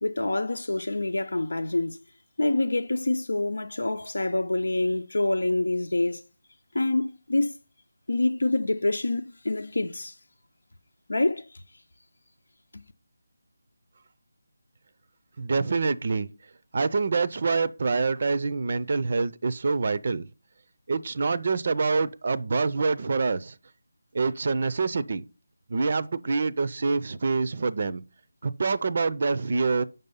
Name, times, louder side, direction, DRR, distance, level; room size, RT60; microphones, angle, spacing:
voice 1, 0.0-2.0 2.4-6.2 6.7-7.6 8.1-10.1 11.1-11.5 12.7-12.8, left 2 dB, 80° left, 0.7 m, -26 dB
voice 2, 15.4-16.3 16.7-20.3 20.9-23.5 24.1-25.2 25.7-28.0 28.4-29.8, right 4 dB, 45° right, 0.5 m, -26 dB
7.7 x 5.4 x 5.4 m
figure-of-eight pair, 165°, 0 cm